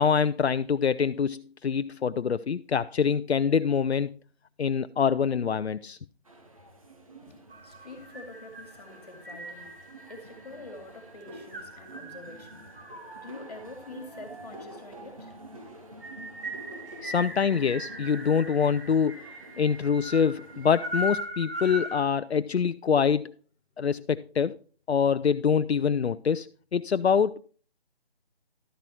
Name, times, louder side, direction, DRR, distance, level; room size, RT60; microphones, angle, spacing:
voice 1, 0.0-4.1 4.6-6.0 17.0-19.3 19.6-23.3 23.8-24.6 24.9-27.4, left 6 dB, 80° left, 0.6 m, -25 dB
sound 1, 6.2-21.2, right 1 dB, 35° right, 1.3 m, -49 dB
voice 2, 7.3-9.7 10.1-12.6 13.1-15.3, left 2 dB, 40° left, 2.4 m, -46 dB
sound 2, 7.5-22.0, equal, 60° right, 2.9 m, -40 dB
12.5 x 6.1 x 4.4 m
figure-of-eight pair, 175°, 32 cm